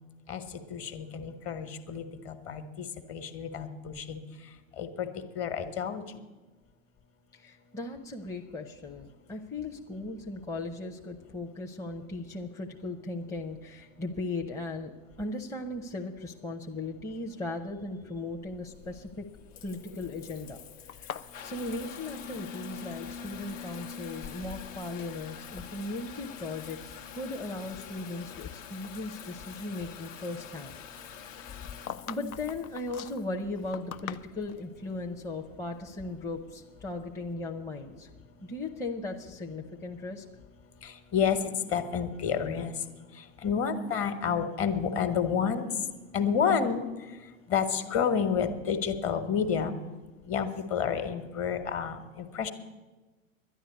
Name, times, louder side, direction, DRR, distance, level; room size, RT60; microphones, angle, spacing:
voice 1, 0.7-4.2 4.8-5.1 5.3-6.0 40.8-41.4 41.7-42.7 43.4-45.7 46.1-46.8 47.5-49.8 50.3-52.5, left 7 dB, 35° left, 9 dB, 1.3 m, -29 dB
voice 2, 7.3-14.9 15.2-19.3 19.6-20.6 21.0-30.7 31.2-31.6 32.1-38.1 38.4-40.2, left 2 dB, 10° left, 1 dB, 0.6 m, -37 dB
Water tap faucet / Bathtub (filling or washing) / Trickle dribble, 18.4-37.3, left 7 dB, 65° left, 1.1 m, -46 dB
sound 1, 20.9-22.9 23.1-23.9 24.6-25.1 25.4-25.7 26.3-26.4 27.0-28.5 28.8-29.0 31.2-34.7, left 9 dB, 85° left, 0.6 m, -44 dB
11.0 x 10.5 x 8.1 m, 1.2 s
hypercardioid pair, 100°, 41 cm